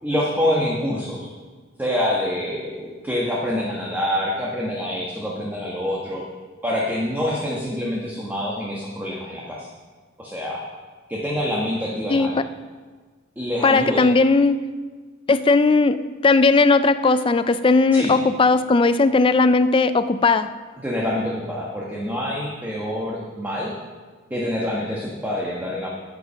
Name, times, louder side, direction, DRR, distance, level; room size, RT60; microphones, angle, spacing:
voice 1, 0.0-1.3 1.8-6.2 6.6-9.7 10.2-10.6 11.1-12.4 13.4-14.0 17.9-18.1 20.8-23.7 24.3-25.9, left 1 dB, 10° right, -4 dB, 1.4 m, -26 dB
voice 2, 13.6-14.6 15.3-20.5, left 3 dB, 25° left, 12 dB, 0.4 m, -17 dB
11.0 x 8.8 x 5.7 m, 1.5 s
head